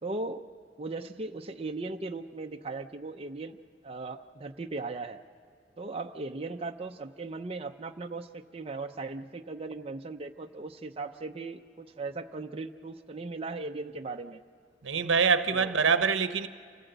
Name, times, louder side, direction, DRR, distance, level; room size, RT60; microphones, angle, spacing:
voice 1, 0.0-0.5 0.8-3.6 3.8-5.2 5.8-14.4 15.5-15.7, right 3 dB, 30° right, 0.6 m, -38 dB
voice 2, 14.8-16.5, right 5 dB, 80° right, 0.9 m, -25 dB
27.5 x 15.0 x 8.0 m
head